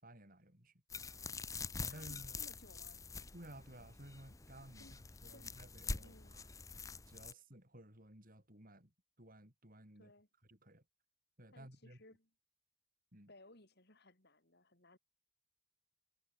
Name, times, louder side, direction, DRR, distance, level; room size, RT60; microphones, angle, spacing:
voice 1, 0.0-0.7 1.7-2.4 3.3-6.5 7.1-8.9 9.2-10.1 10.5-10.8 11.4-12.0 13.1-13.3, right 1 dB, 40° right, 6.9 m, -56 dB
voice 2, 0.9-3.0 4.8-5.0 5.3-5.6 6.0-6.3 10.0-10.3 11.5-12.3 13.3-15.0, left 1 dB, 50° left, 5.3 m, -63 dB
sound 1, 0.9-7.3, left 4 dB, 15° left, 0.7 m, -46 dB
head